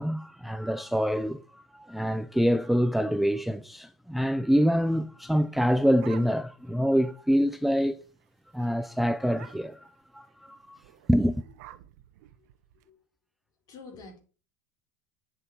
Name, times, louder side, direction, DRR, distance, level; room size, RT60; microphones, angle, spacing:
voice 1, 0.0-8.0 8.5-10.8 11.1-11.4, equal, ahead, 0.5 m, -26 dB
sound 1, 5.4-6.7 7.1-7.2 7.4-7.7 8.1-8.3 8.6-8.7 9.3-9.9 10.8-12.8, right 14 dB, 75° right, 0.9 m, -50 dB
voice 2, 13.7-14.2, left 3 dB, 45° left, 5.0 m, -46 dB
9.9 x 6.6 x 4.5 m
hypercardioid pair, 100°, 9 cm